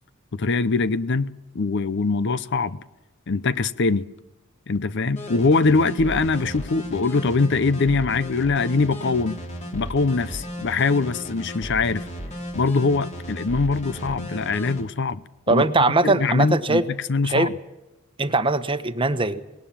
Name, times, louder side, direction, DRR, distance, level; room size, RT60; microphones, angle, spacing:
voice 1, 0.3-1.3 1.5-2.8 3.3-4.1 4.7-9.4 9.7-12.1 12.5-15.2 15.5-15.6 16.0-16.8 17.1-17.5, left 3 dB, 60° left, 0.7 m, -22 dB
sound 1, 5.1-14.8, equal, 35° left, 3.3 m, -35 dB
voice 2, 15.5-16.8 17.2-17.5 18.2-19.4, right 2 dB, 25° right, 1.0 m, -21 dB
20.0 x 18.5 x 7.4 m
head